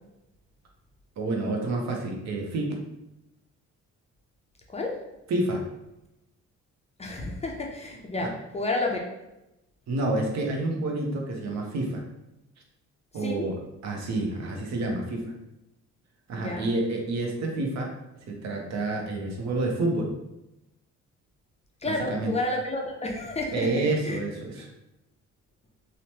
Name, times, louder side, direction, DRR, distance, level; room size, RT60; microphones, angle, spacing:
voice 1, 1.2-2.7 5.3-5.6 8.2-8.3 9.9-12.0 13.1-13.6 13.8-15.3 16.3-17.9 18.3-20.1 21.8-22.3 23.5-24.7, right 2 dB, 65° right, 1 dB, 0.7 m, -28 dB
voice 2, 7.0-9.0 13.2-13.5 16.3-16.7 21.8-23.7 24.0-24.2, left 2 dB, 20° left, 0 dB, 0.4 m, -30 dB
2.9 x 2.1 x 2.8 m, 0.93 s
cardioid pair, 90°, 30 cm